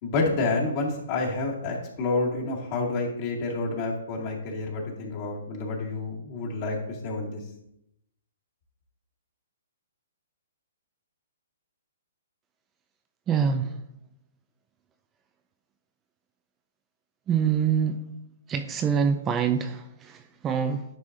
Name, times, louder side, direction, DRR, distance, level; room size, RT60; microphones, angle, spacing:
voice 1, 0.0-7.4, left 3 dB, 40° left, -2 dB, 2.1 m, -29 dB
voice 2, 13.3-13.7 17.3-18.0 18.5-20.8, right 7 dB, 20° right, 7 dB, 0.4 m, -25 dB
10.5 x 4.7 x 2.6 m, 0.78 s
hypercardioid pair, 135°, 0 cm